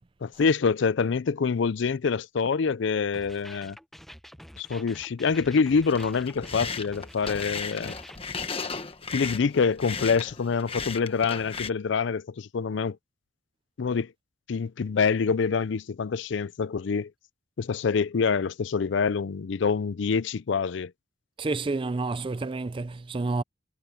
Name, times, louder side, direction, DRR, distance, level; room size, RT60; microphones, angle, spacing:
voice 1, 0.2-3.8 4.6-7.9 9.1-13.0 13.8-14.1 14.5-17.1 17.6-20.9, left 5 dB, 65° left, 0.4 m, -26 dB
sound 1, 3.1-8.2, equal, ahead, 0.9 m, -47 dB
sound 2, 5.9-11.7, left 5 dB, 30° left, 1.3 m, -35 dB
voice 2, 21.4-23.4, right 3 dB, 25° right, 0.4 m, -29 dB
head